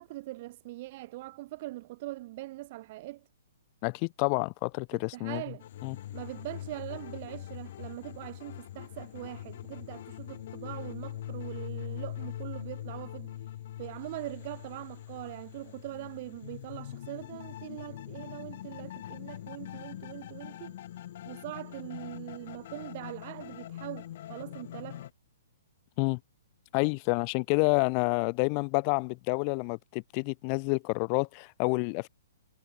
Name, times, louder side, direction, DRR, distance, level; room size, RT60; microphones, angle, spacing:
voice 1, 0.0-3.3 4.9-5.6 6.1-13.3 13.8-20.8 21.3-25.0, right 18 dB, 45° right, 0.5 m, -42 dB
voice 2, 3.8-5.4 5.8-6.0 26.0-26.2 26.7-32.1, left 40 dB or more, 35° left, 1.0 m, -28 dB
sound 1, 5.6-25.1, left 12 dB, 55° left, 0.5 m, -42 dB
hypercardioid pair, 125°, 0 cm